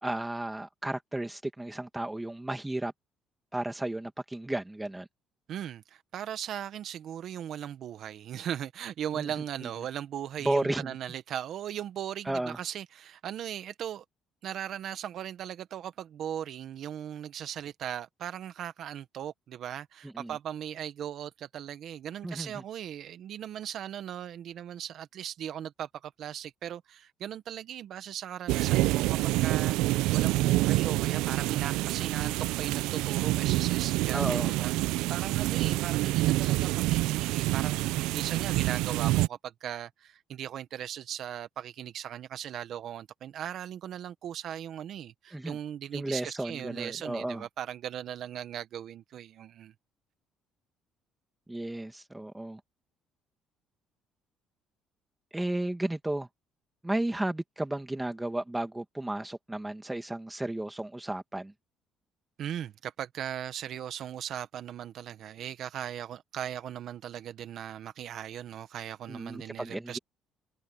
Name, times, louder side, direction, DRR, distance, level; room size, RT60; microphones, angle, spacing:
voice 1, 0.0-2.9 3.5-5.1 9.1-9.3 9.6-9.7 10.4-11.0 12.3-12.6 20.0-20.4 22.2-22.6 34.1-34.6 45.3-45.6 45.9-47.5 51.5-52.6 55.3-56.3 56.8-61.5 69.1-70.0, right 1 dB, 10° right, 2.1 m, -33 dB
voice 2, 5.5-14.0 14.4-37.8 38.1-49.7 62.4-70.0, right 10 dB, 60° right, 1.2 m, -38 dB
sound 1, 28.5-39.3, right 18 dB, 90° right, 0.5 m, -27 dB
cardioid pair, 100°, 0 cm